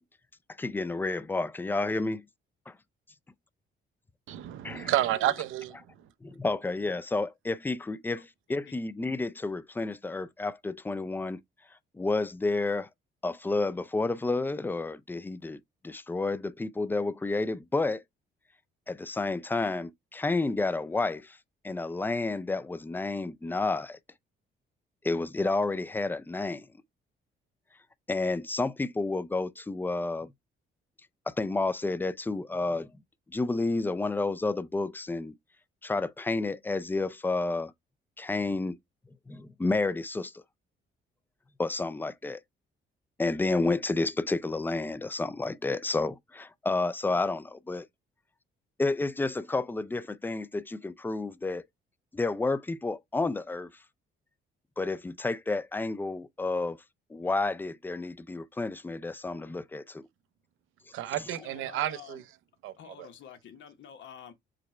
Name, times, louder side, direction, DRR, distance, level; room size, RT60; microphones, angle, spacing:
voice 1, 0.6-2.2 2.7-2.8 4.6-4.9 6.2-11.4 11.9-12.9 13.2-18.0 18.9-21.4 21.6-24.0 25.0-26.7 28.1-30.3 31.3-32.9 33.3-35.3 35.8-37.7 38.2-38.8 39.3-40.4 41.6-42.4 43.2-47.9 48.8-51.6 52.1-53.7 54.8-56.8 57.1-60.0, left 3 dB, 10° left, 0.4 m, -30 dB
voice 2, 4.3-5.8 60.9-62.2 62.6-62.7 63.0-63.1, right 13 dB, 85° right, 0.6 m, -30 dB
voice 3, 4.9-5.3 8.2-8.3 8.7-8.8 61.4-62.2 62.8-64.3, left 8 dB, 70° left, 1.0 m, -49 dB
5.0 x 2.2 x 4.2 m
cardioid pair, 90°, 20 cm